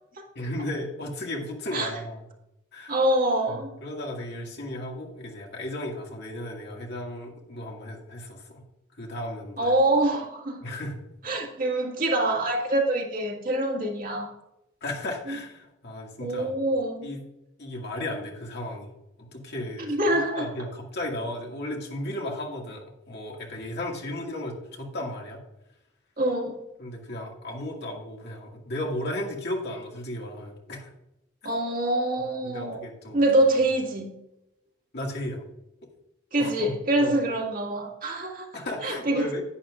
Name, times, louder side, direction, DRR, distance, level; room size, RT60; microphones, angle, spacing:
voice 1, 0.4-2.2 2.7-3.0 3.5-8.6 9.0-9.7 10.6-11.0 14.8-16.5 17.0-17.2 17.6-19.9 20.4-25.4 26.8-30.9 32.4-33.2 34.9-35.4 36.4-37.2 38.5-39.4, left 1 dB, 60° left, 0 dB, 2.0 m, -35 dB
voice 2, 2.9-3.7 9.6-10.7 11.2-14.3 15.3-15.4 16.2-17.1 19.8-20.5 26.2-26.6 31.4-32.8 33.1-34.2 36.3-38.5 38.8-39.3, right 1 dB, 45° right, 0 dB, 1.8 m, -25 dB
11.0 x 9.6 x 2.5 m, 0.87 s
head